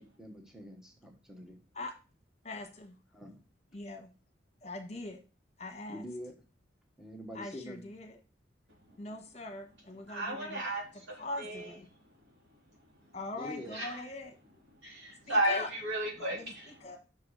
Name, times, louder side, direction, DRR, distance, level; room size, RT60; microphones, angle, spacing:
voice 1, 0.0-1.6 3.1-3.4 5.9-6.3 7.0-7.9 8.9-9.2 13.3-13.8, left 1 dB, 5° right, 2 dB, 1.2 m, -45 dB
voice 2, 2.4-2.9 3.7-4.1 4.6-5.2 5.6-6.0 7.3-8.2 9.0-10.6 11.2-11.9 13.1-14.4 15.3-15.7 16.2-16.3 16.8-17.0, left 2 dB, 35° left, 5 dB, 1.4 m, -41 dB
voice 3, 10.1-11.8 12.7-13.1 13.7-14.0 14.8-16.9, right 1 dB, 80° right, -2 dB, 3.7 m, -34 dB
6.0 x 4.8 x 6.3 m, 0.33 s
head